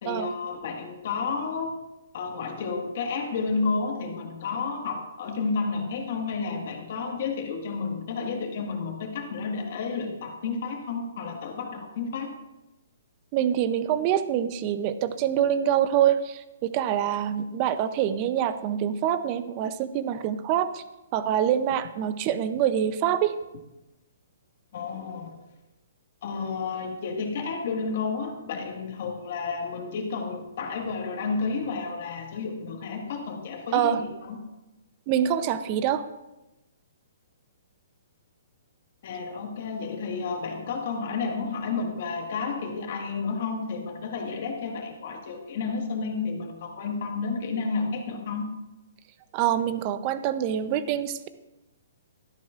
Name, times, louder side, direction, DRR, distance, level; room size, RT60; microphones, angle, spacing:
voice 1, 0.0-1.8 2.1-12.3 24.7-25.3 26.2-34.4 39.0-48.5, left 4 dB, 55° left, 3 dB, 1.7 m, -31 dB
voice 2, 13.3-20.8 21.1-23.3 33.7-34.0 35.1-36.0 49.3-51.3, right 10 dB, 30° right, 12 dB, 0.6 m, -25 dB
12.5 x 11.0 x 2.5 m, 1.0 s
hypercardioid pair, 155°, 0 cm